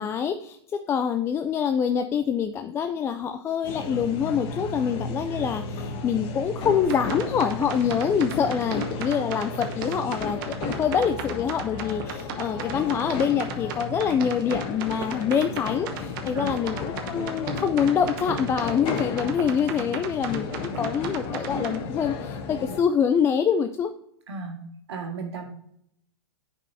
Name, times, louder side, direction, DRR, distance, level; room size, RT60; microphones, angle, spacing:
voice 1, 0.0-23.9, left 7 dB, 20° left, 8 dB, 0.3 m, -25 dB
sound 1, 3.6-22.8, left 4 dB, 40° left, 1.0 m, -33 dB
sound 2, 6.8-21.8, right 8 dB, 55° right, 1.0 m, -36 dB
voice 2, 24.3-24.6 24.9-25.5, right 4 dB, 80° right, 2 dB, 1.7 m, -34 dB
9.1 x 5.4 x 2.7 m, 0.71 s
hypercardioid pair, 120°, 14 cm